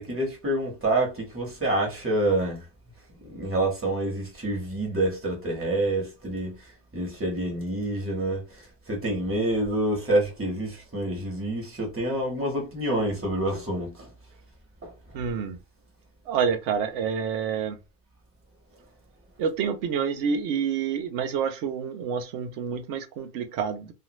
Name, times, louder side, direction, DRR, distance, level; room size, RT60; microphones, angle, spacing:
voice 1, 0.0-2.6 3.2-6.5 6.9-8.4 8.9-14.1 14.8-14.9, right 1 dB, 10° right, 1.0 m, -27 dB
voice 2, 15.1-15.6 16.3-17.8 19.4-23.9, right 7 dB, 80° right, 0.9 m, -28 dB
2.5 x 2.4 x 2.9 m
omnidirectional pair, 1.2 m